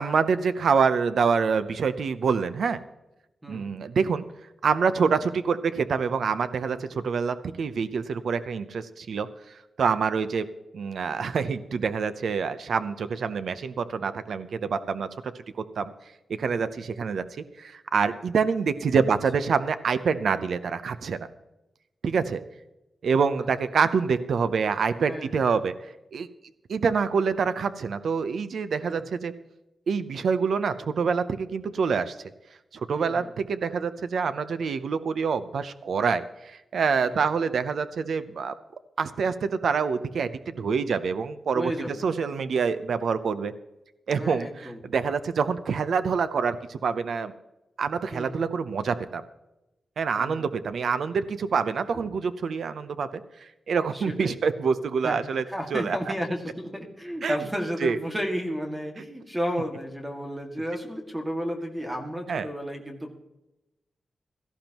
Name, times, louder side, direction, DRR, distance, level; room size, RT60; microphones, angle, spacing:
voice 1, 0.0-2.8 3.5-4.2 4.6-9.3 9.8-10.5 10.7-15.9 16.3-17.2 17.6-21.3 22.0-22.4 23.0-25.7 26.1-26.3 26.7-29.3 29.9-32.1 32.7-38.5 39.0-41.7 42.0-43.5 44.1-47.3 47.8-49.2 50.0-55.4 55.7-56.0 57.2-57.4 57.8-58.0 62.3-62.5, right 5 dB, 75° right, 12 dB, 0.7 m, -26 dB
voice 2, 25.1-25.4 28.9-29.0 32.9-33.3 36.9-37.2 41.5-42.0 44.2-44.8 48.1-48.4 50.2-50.5 51.9-52.0 53.9-54.4 55.0-55.2 55.5-63.2, equal, 10° right, 2 dB, 2.0 m, -32 dB
17.0 x 14.0 x 3.0 m, 0.94 s
wide cardioid pair, 135°, 0 cm